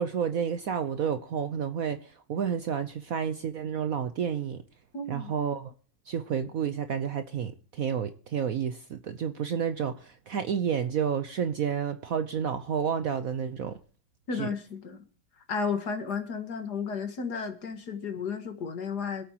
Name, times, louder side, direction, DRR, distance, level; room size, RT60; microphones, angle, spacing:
voice 1, 0.0-4.6 5.1-5.7 6.1-13.8 14.3-14.5, right 7 dB, 60° right, 1.0 m, -30 dB
voice 2, 4.9-5.3 14.3-15.0 15.5-19.2, left 5 dB, 60° left, 2.2 m, -33 dB
25.5 x 8.7 x 2.9 m
omnidirectional pair, 2.1 m